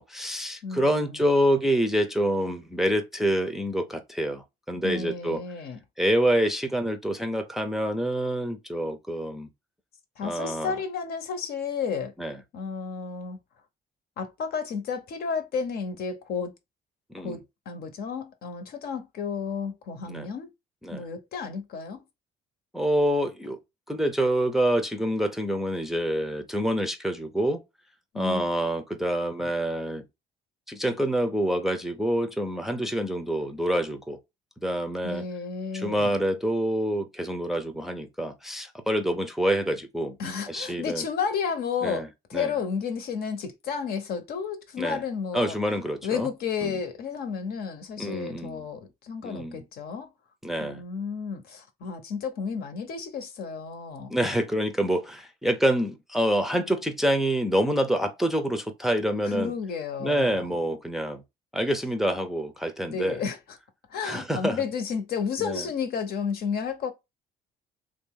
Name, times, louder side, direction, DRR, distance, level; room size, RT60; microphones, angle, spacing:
voice 1, 0.0-5.4 6.0-9.5 10.2-10.7 12.2-12.4 17.1-17.4 20.1-20.3 20.8-21.0 22.7-23.6 23.9-27.6 28.1-30.0 30.7-34.2 34.6-35.2 35.7-40.2 40.5-41.0 41.8-42.1 42.3-42.5 44.8-45.0 45.3-46.3 46.6-46.7 48.0-48.6 49.2-49.6 50.4-50.8 54.1-59.5 60.0-61.2 61.5-63.2 64.0-64.6 65.4-65.6, equal, ahead, 0.5 m, -27 dB
voice 2, 0.6-1.2 4.8-5.8 10.2-12.1 12.5-13.4 14.2-16.5 17.2-20.5 20.9-22.0 28.1-28.5 29.4-29.5 35.0-36.2 40.2-45.6 46.0-50.1 50.6-54.1 59.2-60.5 62.9-63.4 63.9-66.9, left 6 dB, 65° left, 0.9 m, -32 dB
3.1 x 2.6 x 3.6 m
cardioid pair, 110°, 17 cm